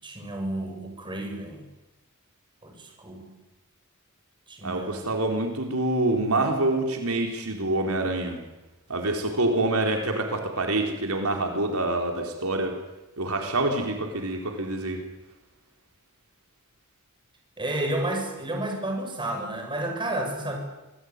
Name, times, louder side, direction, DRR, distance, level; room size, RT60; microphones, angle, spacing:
voice 1, 0.0-1.6 2.6-3.3 4.5-5.2 17.6-20.6, right 1 dB, 20° right, 3 dB, 6.9 m, -31 dB
voice 2, 4.6-8.4 8.9-12.7 13.2-15.0, right 2 dB, 80° right, 3 dB, 4.3 m, -26 dB
26.5 x 20.0 x 9.8 m, 1.0 s
head